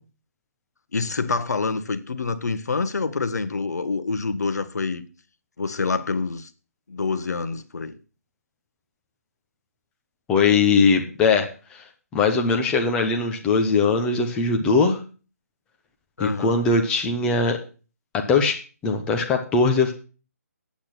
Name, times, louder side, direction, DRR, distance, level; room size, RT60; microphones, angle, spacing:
voice 1, 0.9-5.1 5.6-6.5 6.9-8.0 16.2-16.6, left 4 dB, 75° left, 1.2 m, -26 dB
voice 2, 10.3-11.8 12.1-15.0 16.2-17.6 18.1-19.9, left 4 dB, 10° left, 0.9 m, -21 dB
8.7 x 8.5 x 5.9 m
hypercardioid pair, 165°, 9 cm